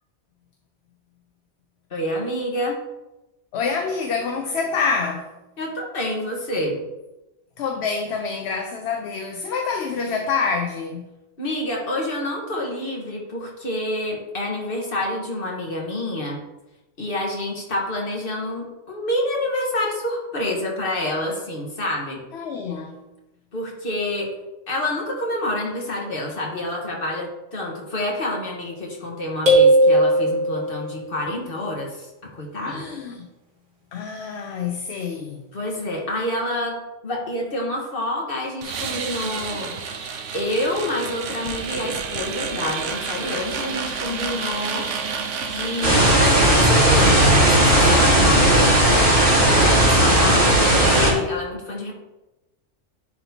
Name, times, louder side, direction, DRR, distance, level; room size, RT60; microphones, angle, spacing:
voice 1, 1.9-2.8 5.6-6.8 11.4-16.4 17.0-22.2 23.5-24.3 24.7-32.9 35.5-36.8 37.0-39.8 40.3-45.1 45.4-49.0 49.8-51.9, left 1 dB, 50° left, -1 dB, 1.6 m, -27 dB
voice 2, 3.5-5.3 7.6-11.1 22.3-23.0 32.6-33.3 33.9-35.4, left 5 dB, 65° left, 4 dB, 0.8 m, -27 dB
sound 1, 29.5-31.0, right 1 dB, 35° right, 1.8 m, -16 dB
sound 2, 38.6-46.2, right 6 dB, 75° right, 1.0 m, -30 dB
sound 3, 45.8-51.1, right 1 dB, 55° right, 2.2 m, -16 dB
10.5 x 4.1 x 2.8 m, 1.0 s
omnidirectional pair, 1.2 m